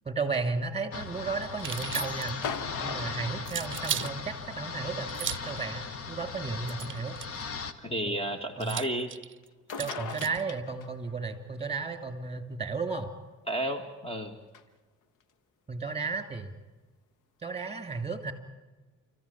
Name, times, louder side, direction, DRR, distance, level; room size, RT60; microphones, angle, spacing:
voice 1, 0.0-2.4 2.8-7.2 8.6-8.8 9.8-13.1 15.7-16.5 17.4-18.3, right 4 dB, 20° right, 8 dB, 2.9 m, -34 dB
sound 1, 0.9-7.7, left 5 dB, 50° left, 1.5 m, -38 dB
sound 2, 1.6-2.5 3.5-4.1 5.1-5.6 6.7-7.4 8.6-10.4, right 9 dB, 40° right, 0.6 m, -36 dB
sound 3, 2.4-4.2 5.5-5.6 6.5-6.6 9.4-9.5 9.7-11.1 14.5-14.6, left 6 dB, 85° left, 1.3 m, -39 dB
voice 2, 7.8-9.1 13.5-14.3, right 1 dB, 20° left, 7 dB, 1.8 m, -32 dB
30.0 x 14.5 x 8.6 m, 1.2 s
cardioid pair, 90°, 30 cm